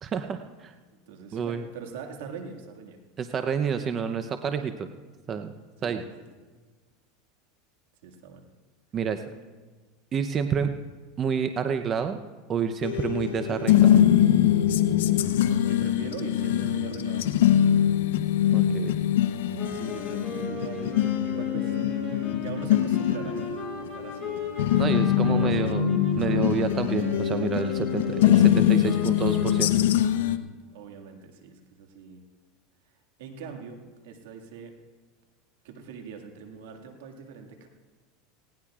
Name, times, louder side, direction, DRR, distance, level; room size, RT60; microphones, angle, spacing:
voice 1, 0.0-0.7 1.3-1.6 3.2-4.9 5.3-5.5 5.8-6.0 8.9-9.2 10.1-10.7 11.2-12.2 12.5-14.0 18.5-19.0 24.8-25.9 26.2-29.7, right 7 dB, 30° right, 8 dB, 0.7 m, -29 dB
voice 2, 1.1-3.0 5.8-6.1 8.0-8.4 15.7-17.3 19.7-21.7 22.1-23.4 23.8-24.4 25.2-25.6 30.7-32.2 33.2-34.7 35.6-37.7, right 6 dB, 80° right, 3 dB, 1.9 m, -42 dB
sound 1, 12.8-30.4, left 11 dB, 85° left, 0.7 m, -23 dB
sound 2, 19.5-30.0, left 3 dB, 5° left, 5.5 m, -37 dB
19.0 x 17.5 x 2.4 m, 1.3 s
supercardioid pair, 120°, 0 cm